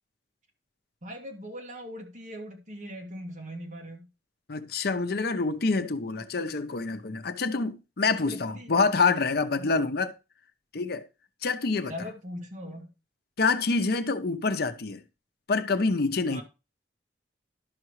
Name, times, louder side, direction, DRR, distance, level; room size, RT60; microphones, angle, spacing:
voice 1, 1.0-4.1 8.2-8.7 9.6-9.7 11.9-12.9 16.3-16.4, equal, 45° right, 2.0 m, -40 dB
voice 2, 4.5-10.1 10.7-11.0 11.4-11.9 13.4-15.0 15.5-16.4, left 4 dB, 60° left, 0.7 m, -26 dB
11.5 x 6.0 x 3.1 m
head